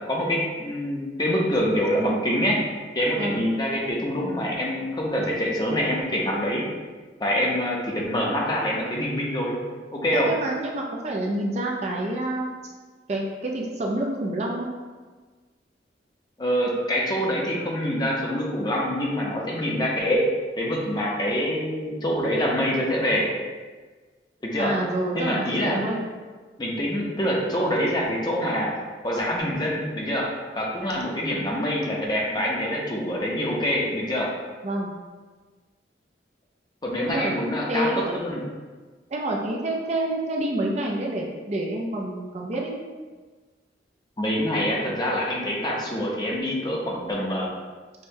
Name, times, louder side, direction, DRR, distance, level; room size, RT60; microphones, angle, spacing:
voice 1, 0.1-2.6 2.9-6.6 7.2-9.6 9.9-10.3 16.4-20.2 20.6-23.3 24.4-24.7 25.1-25.8 26.6-28.7 29.0-34.3 36.8-38.4 44.2-47.5, equal, 25° left, -3 dB, 0.6 m, -25 dB
voice 2, 3.2-3.5 10.1-12.5 13.1-14.7 24.6-26.1 34.6-34.9 37.1-37.3 37.7-38.3 39.1-42.7, right 1 dB, 35° right, -1 dB, 0.4 m, -28 dB
6.2 x 2.1 x 2.7 m, 1.4 s
head